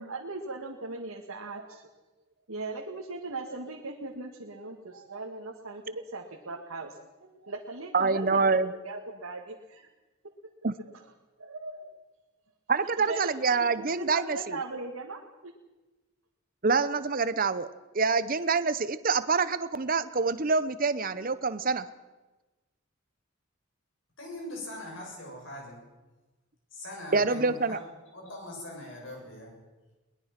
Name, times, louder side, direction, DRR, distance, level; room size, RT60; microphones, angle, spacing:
voice 1, 0.0-1.9 2.5-9.9 11.4-11.9 13.1-15.5, right 3 dB, 75° right, 0 dB, 1.9 m, -39 dB
voice 2, 7.9-8.7 10.6-10.7 12.7-14.6 16.6-17.7 17.9-21.9 27.1-27.8, right 4 dB, 40° right, 14 dB, 0.8 m, -26 dB
voice 3, 24.2-25.8 26.7-27.8 28.1-29.5, left 1 dB, 60° left, 0 dB, 7.4 m, -41 dB
22.0 x 20.5 x 5.9 m, 1.2 s
head